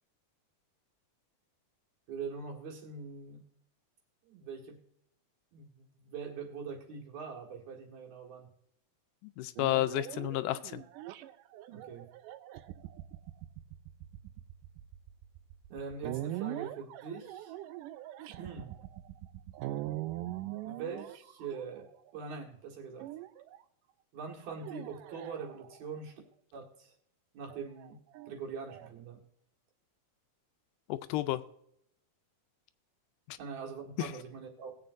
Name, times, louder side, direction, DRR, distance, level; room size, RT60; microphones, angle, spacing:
voice 1, 2.1-3.4 4.3-4.8 5.5-8.5 11.7-12.1 15.7-17.5 18.2-18.8 20.6-21.9 22.1-23.1 24.1-26.1 26.5-26.9 27.3-28.0 28.3-29.2 33.4-34.7, right 5 dB, 65° right, 0 dB, 3.0 m, -43 dB
voice 2, 9.4-10.8 30.9-31.4 33.3-33.4 34.0-34.1, left 14 dB, 85° left, 12 dB, 2.2 m, -31 dB
sound 1, 9.6-22.2 23.0-23.6 24.4-25.9 27.5-28.9, right 15 dB, 85° right, 2.2 m, -42 dB
20.0 x 8.0 x 2.6 m, 0.72 s
omnidirectional pair, 3.7 m